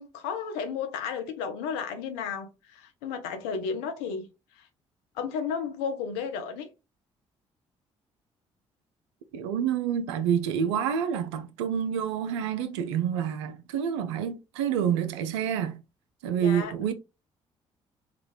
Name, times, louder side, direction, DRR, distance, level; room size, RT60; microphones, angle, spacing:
voice 1, 0.0-4.3 4.6-4.7 5.1-6.7 16.4-16.7, left 6 dB, 80° left, 0.6 m, -33 dB
voice 2, 9.3-15.8 16.2-16.9, right 8 dB, 80° right, 0.4 m, -28 dB
3.9 x 2.4 x 3.0 m
hypercardioid pair, 45°, 14 cm